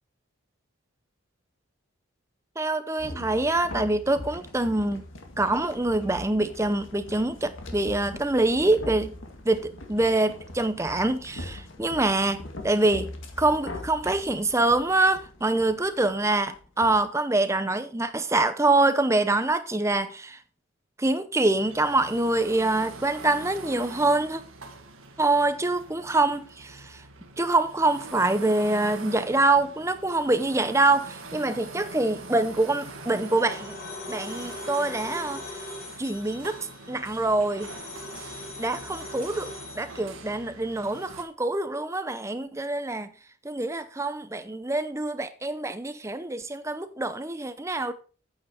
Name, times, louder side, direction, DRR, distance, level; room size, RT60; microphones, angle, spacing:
voice 1, 2.6-5.0 5.4-9.1 9.5-20.4 21.0-24.4 25.2-27.0 27.4-33.8 34.1-35.4 36.0-36.6 36.9-37.7 38.6-43.1 43.4-47.9, right 2 dB, 15° right, 0.6 m, -25 dB
sound 1, 3.0-17.0, left 1 dB, 65° left, 2.0 m, -41 dB
sound 2, 21.5-41.2, right 3 dB, 75° right, 1.7 m, -44 dB
sound 3, 32.6-40.0, left 2 dB, 50° left, 5.5 m, -41 dB
8.9 x 8.7 x 4.4 m
head